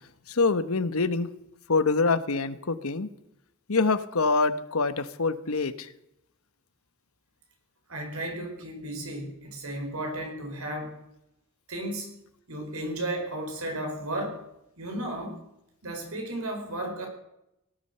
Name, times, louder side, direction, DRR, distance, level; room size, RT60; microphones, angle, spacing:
voice 1, 0.3-1.3 1.7-3.1 3.7-5.9, left 3 dB, 80° left, 12 dB, 1.1 m, -25 dB
voice 2, 7.9-10.9 11.7-12.1 12.5-14.4 14.8-15.4 15.8-17.1, right 1 dB, 85° right, 3 dB, 5.0 m, -34 dB
18.0 x 12.0 x 6.8 m, 0.83 s
head